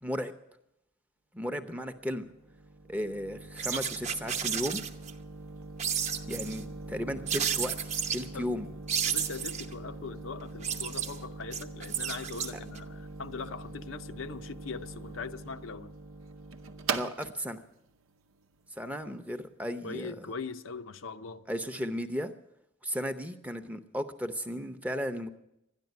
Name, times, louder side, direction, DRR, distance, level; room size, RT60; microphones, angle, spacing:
voice 1, 0.0-0.3 1.3-2.2 2.9-4.8 6.3-7.8 8.1-8.7 12.5-12.6 16.9-17.6 18.8-20.3 21.5-22.3 22.8-25.3, equal, 5° right, 0.7 m, -35 dB
sound 1, 1.8-19.4, right 3 dB, 85° right, 0.8 m, -43 dB
sound 2, 3.6-5.1 5.8-6.6 7.3-8.2 8.9-9.7 10.4-12.8, right 7 dB, 35° right, 0.9 m, -32 dB
voice 2, 9.1-15.9 19.8-21.4, left 4 dB, 75° left, 0.7 m, -41 dB
13.0 x 10.5 x 9.3 m
head